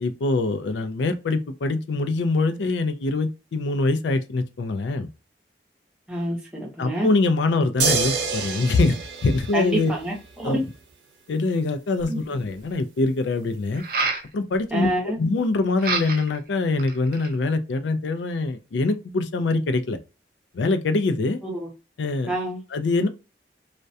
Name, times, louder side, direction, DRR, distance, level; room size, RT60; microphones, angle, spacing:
voice 1, 0.0-5.1 6.8-10.0 10.4-10.6 11.3-13.8 14.3-20.0 20.5-21.4 22.0-22.3 22.7-23.1, left 3 dB, 90° left, 0.4 m, -24 dB
voice 2, 6.1-7.1 7.6-7.7 9.5-10.6 12.1-12.2 14.7-15.2 21.4-21.7 22.3-22.6, right 1 dB, 5° right, 0.7 m, -27 dB
sound 1, 7.8-10.3 12.0-12.1, right 5 dB, 85° right, 0.7 m, -27 dB
sound 2, 12.1-12.2 13.7-14.3 15.8-16.4 16.8-17.4, right 4 dB, 55° right, 0.4 m, -27 dB
2.3 x 2.1 x 2.6 m
head